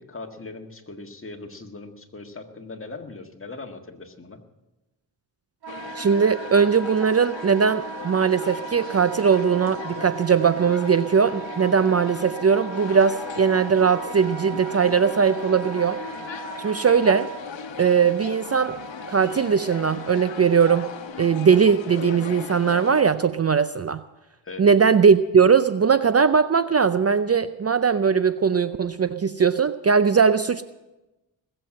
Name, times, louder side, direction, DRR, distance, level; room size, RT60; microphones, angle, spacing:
voice 1, 0.0-4.4 24.4-24.7, left 3 dB, 30° left, 4 dB, 1.8 m, -39 dB
Wind instrument woodwind instrument, 5.6-17.4, right 6 dB, 60° right, 2.5 m, -38 dB
sound 1, 5.7-23.0, left 8 dB, 80° left, 1.1 m, -38 dB
voice 2, 6.0-16.0 16.6-17.3 17.8-18.7 19.1-20.9 21.2-24.0 24.6-30.6, right 6 dB, 35° right, 12 dB, 0.5 m, -20 dB
sound 2, 11.4-21.1, right 4 dB, ahead, 3.8 m, -44 dB
20.5 x 7.7 x 7.6 m, 1.0 s
cardioid pair, 70°, 44 cm